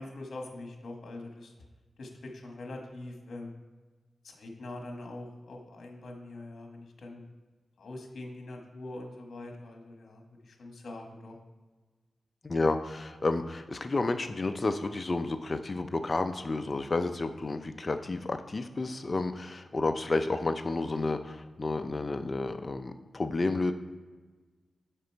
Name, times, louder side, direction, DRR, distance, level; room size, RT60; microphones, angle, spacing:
voice 1, 0.0-1.5 2.0-3.5 4.2-7.2 7.8-11.4, left 2 dB, 70° left, 2 dB, 1.3 m, -43 dB
voice 2, 12.4-23.7, left 3 dB, 40° left, 8 dB, 0.4 m, -31 dB
6.7 x 5.0 x 4.5 m, 1.3 s
cardioid pair, 70°, 0 cm